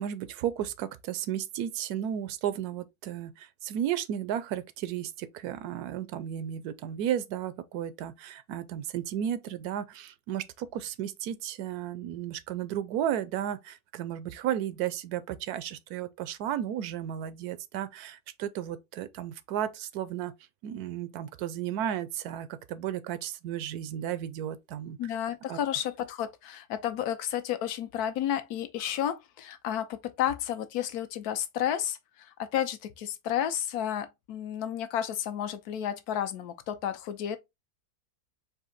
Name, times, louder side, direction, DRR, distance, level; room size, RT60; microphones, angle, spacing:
voice 1, 0.0-20.3 20.6-25.0 25.5-25.6, right 10 dB, 85° right, 1.1 m, -34 dB
voice 2, 25.0-37.4, left 10 dB, 85° left, 1.2 m, -32 dB
4.2 x 2.7 x 3.8 m
omnidirectional pair, 1.6 m